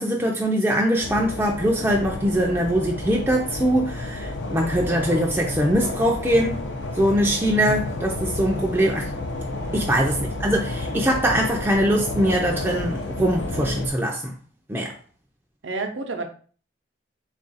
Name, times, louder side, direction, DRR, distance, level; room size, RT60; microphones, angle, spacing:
voice 1, 0.0-6.6 7.0-9.1 9.7-14.3 14.7-14.9, equal, 10° right, 0.4 m, -22 dB
sound 1, 1.0-13.9, left 2 dB, 75° left, 0.5 m, -31 dB
voice 2, 9.5-9.9 15.6-16.2, right 3 dB, 75° right, 0.7 m, -31 dB
3.4 x 2.5 x 3.9 m
head